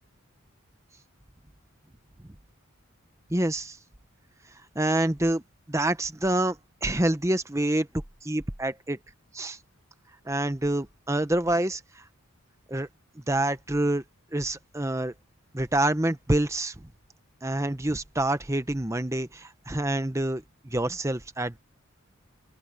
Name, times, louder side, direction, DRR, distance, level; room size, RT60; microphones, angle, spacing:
voice 1, 3.3-3.8 4.7-5.4 5.7-7.9 8.2-9.0 9.3-9.6 10.2-12.0 12.7-12.9 13.3-14.0 14.3-15.1 15.5-16.7 17.4-21.6, right 1 dB, 15° right, 0.9 m, -27 dB
open air
head